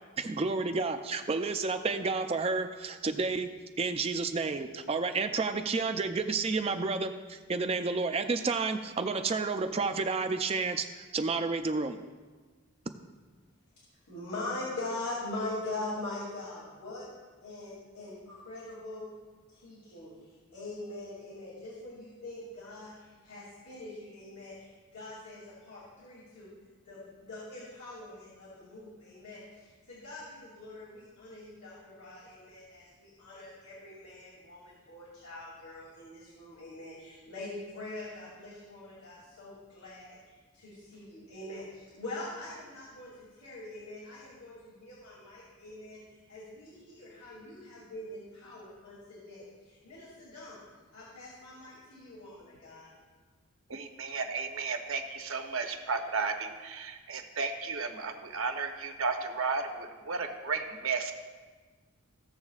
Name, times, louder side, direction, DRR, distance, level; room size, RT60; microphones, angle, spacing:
voice 1, 0.2-3.5 3.8-12.0, right 4 dB, 25° right, 7 dB, 0.4 m, -30 dB
voice 2, 14.1-17.1 17.4-19.1 19.5-26.5 26.8-40.2 40.5-50.7 50.9-52.9, left 2 dB, 85° left, -7 dB, 2.6 m, -43 dB
voice 3, 53.7-61.1, right 4 dB, 70° right, 5 dB, 0.9 m, -34 dB
16.0 x 7.1 x 2.4 m, 1.4 s
head